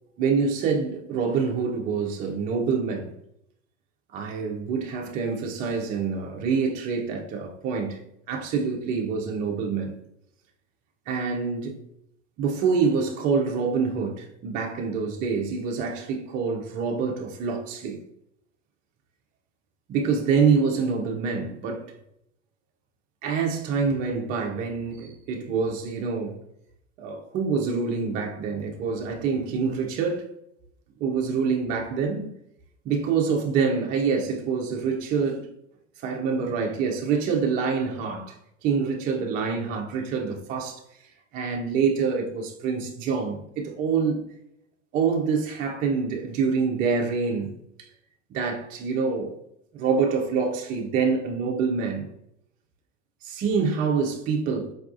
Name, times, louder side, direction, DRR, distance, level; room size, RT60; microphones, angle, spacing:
voice 1, 0.2-3.1 4.1-8.0 8.3-10.0 11.1-11.8 12.4-18.0 19.9-21.9 23.2-26.4 27.0-30.3 31.0-32.3 32.9-35.5 36.0-38.4 38.6-40.8 41.3-44.2 44.9-47.6 48.3-49.3 49.7-52.1 53.2-54.7, right 5 dB, 25° right, 0.4 m, -26 dB
4.6 x 2.3 x 2.4 m
hypercardioid pair, 105°, 38 cm